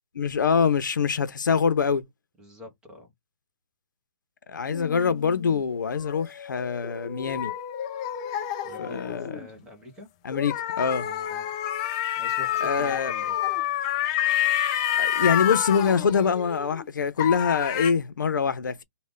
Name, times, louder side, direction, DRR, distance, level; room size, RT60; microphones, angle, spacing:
voice 1, 0.2-2.0 4.5-7.5 8.8-9.4 10.2-11.1 12.6-13.1 15.0-18.8, left 6 dB, 80° left, 0.8 m, -24 dB
voice 2, 2.4-3.1 8.6-10.1 11.0-11.5 12.2-13.3, left 1 dB, 5° right, 0.9 m, -45 dB
sound 1, 4.7-9.5 10.3-16.9 17.2-17.9, left 11 dB, 20° left, 0.4 m, -29 dB
3.3 x 2.4 x 3.7 m
hypercardioid pair, 165°, 10 cm